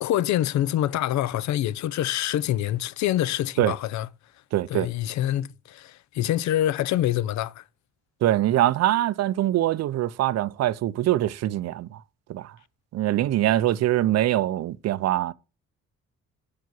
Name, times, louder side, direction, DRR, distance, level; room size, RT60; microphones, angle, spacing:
voice 1, 0.0-4.1 4.7-7.6, left 12 dB, 70° left, 0.5 m, -26 dB
voice 2, 4.5-4.9 8.2-12.0 12.3-12.6 12.9-15.3, right 13 dB, 60° right, 0.5 m, -23 dB
6.7 x 4.8 x 5.9 m
cardioid pair, 90°, 30 cm